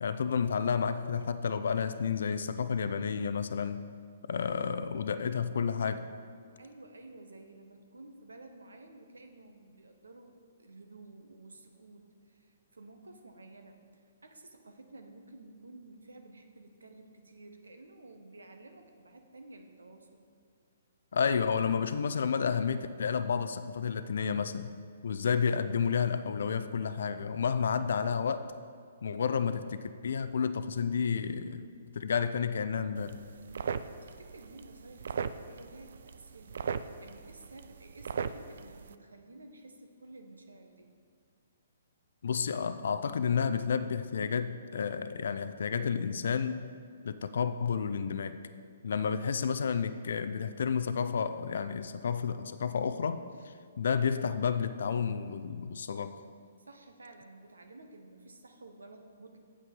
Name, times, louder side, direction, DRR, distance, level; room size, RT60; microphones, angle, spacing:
voice 1, 0.0-3.8 4.3-6.1 21.1-24.7 25.0-28.5 29.0-31.7 31.9-33.2 42.2-46.7 47.0-48.4 48.8-56.2, left 6 dB, 60° left, 11 dB, 0.4 m, -31 dB
voice 2, 6.6-20.2 33.6-40.9 56.6-59.4, right 2 dB, 75° right, 6 dB, 1.0 m, -53 dB
sound 1, 32.9-38.9, right 6 dB, 60° right, 0.4 m, -39 dB
8.5 x 7.6 x 5.3 m, 2.2 s
figure-of-eight pair, 125°, 0 cm